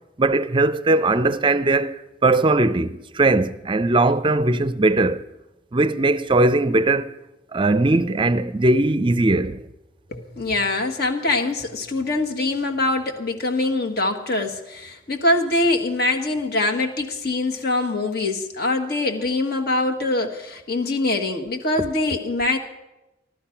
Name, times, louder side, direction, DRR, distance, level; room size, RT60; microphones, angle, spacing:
voice 1, 0.2-5.2 5.7-7.1 7.5-9.6, right 2 dB, 25° right, 0.5 m, -19 dB
voice 2, 10.1-22.6, left 2 dB, 55° left, 1.5 m, -23 dB
15.0 x 12.0 x 5.8 m
head